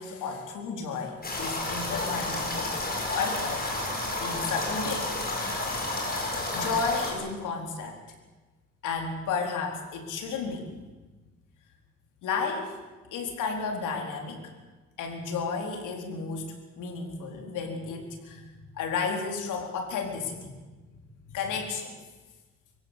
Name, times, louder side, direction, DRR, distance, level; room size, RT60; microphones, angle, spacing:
voice 1, 0.0-2.8 3.1-3.7 4.2-5.1 6.5-8.0 8.8-10.7 12.2-12.7 13.1-14.4 15.0-20.6 21.2-22.0, left 5 dB, 85° left, 3 dB, 4.5 m, -32 dB
sound 1, 1.2-7.1, left 2 dB, 30° left, 6.9 m, -31 dB
25.0 x 16.0 x 8.3 m, 1.3 s
cardioid pair, 90°, 30 cm